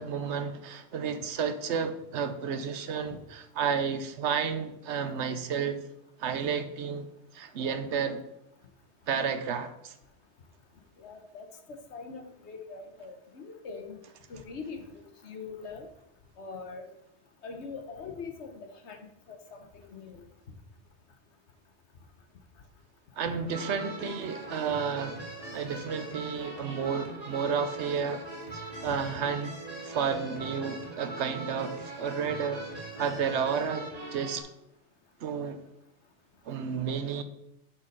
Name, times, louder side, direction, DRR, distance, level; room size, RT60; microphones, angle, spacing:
voice 1, 0.0-5.8 6.2-7.1 7.3-8.2 9.1-10.0 23.2-25.2 25.5-28.2 28.5-29.5 29.8-32.6 33.0-34.5 35.2-35.6 36.4-37.2, right 6 dB, 75° right, 1.0 m, -31 dB
voice 2, 11.0-14.0 14.3-15.9 16.4-16.9 17.4-20.2 28.9-29.0, left 4 dB, 70° left, 1.3 m, -43 dB
sound 1, 23.5-34.4, right 2 dB, 35° right, 2.0 m, -41 dB
6.5 x 5.7 x 5.3 m
omnidirectional pair, 1.2 m